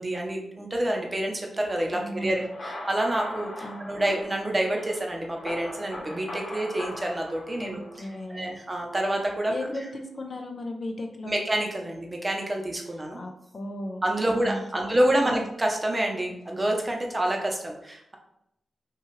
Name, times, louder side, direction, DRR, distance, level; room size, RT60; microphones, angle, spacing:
voice 1, 0.0-9.5 11.2-13.2 14.0-18.2, right 1 dB, 20° right, 1 dB, 0.7 m, -28 dB
voice 2, 1.9-2.5 3.6-3.9 7.6-8.5 9.5-11.4 13.2-14.9 15.2-15.4, left 1 dB, 45° left, 3 dB, 0.5 m, -36 dB
sound 1, 2.4-8.2, left 1 dB, 80° left, 1.5 m, -39 dB
5.6 x 2.4 x 3.1 m, 0.80 s
wide cardioid pair, 115°, 0 cm